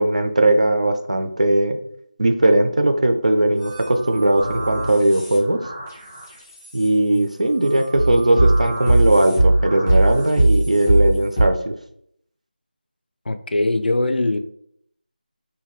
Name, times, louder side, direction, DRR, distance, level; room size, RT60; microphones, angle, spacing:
voice 1, 0.0-1.8 2.2-5.6 6.7-11.7, right 1 dB, 45° right, 0.3 m, -18 dB
sound 1, 3.6-6.9 7.6-11.5, right 2 dB, 15° left, 0.5 m, -20 dB
voice 2, 13.3-14.4, left 2 dB, 80° left, 0.3 m, -21 dB
2.7 x 2.2 x 3.1 m
figure-of-eight pair, 180°, 5 cm